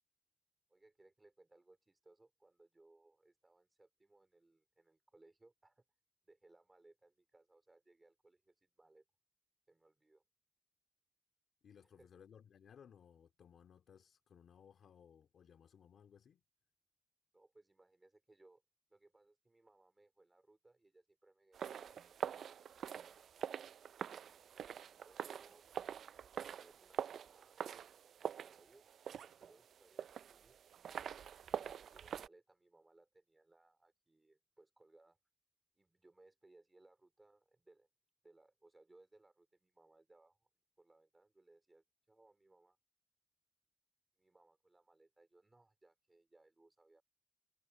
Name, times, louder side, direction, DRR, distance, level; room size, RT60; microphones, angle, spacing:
voice 1, 0.7-5.8 6.2-9.0 9.7-10.2 12.0-12.1 17.3-18.6 18.9-23.3 24.9-25.7 26.2-27.6 28.2-28.9 29.2-30.6 31.4-35.2 35.8-37.9 38.2-40.5 40.8-42.8 44.2-47.0, right 2 dB, 25° right, 4.3 m, -68 dB
voice 2, 11.6-16.4, left 8 dB, 80° left, 2.5 m, -62 dB
sound 1, 21.5-32.3, right 8 dB, 85° right, 0.3 m, -45 dB
cardioid pair, 75°, 0 cm